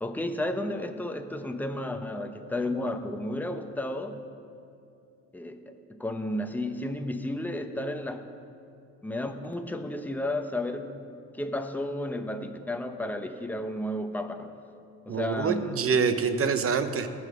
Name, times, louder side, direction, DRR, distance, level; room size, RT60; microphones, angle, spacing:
voice 1, 0.0-4.2 5.3-8.3 9.0-11.0 11.3-14.6 15.1-15.8 16.4-16.6, left 1 dB, 5° left, 6 dB, 0.8 m, -32 dB
voice 2, 15.1-17.1, right 6 dB, 50° right, 9 dB, 0.9 m, -26 dB
18.5 x 6.3 x 4.9 m, 2.5 s
cardioid pair, 90°, 30 cm